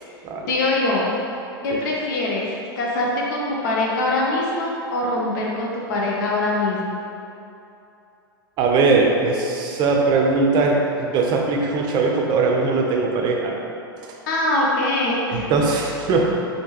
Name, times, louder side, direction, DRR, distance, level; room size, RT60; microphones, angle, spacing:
voice 1, 0.5-1.1 1.6-2.5 2.8-7.0 14.3-15.5, left 2 dB, 55° left, -3 dB, 0.8 m, -23 dB
voice 2, 8.6-13.5 14.0-14.1 15.3-16.4, right 3 dB, 35° right, 0 dB, 0.6 m, -20 dB
5.5 x 2.9 x 2.9 m, 2.8 s
figure-of-eight pair, 95°, 13 cm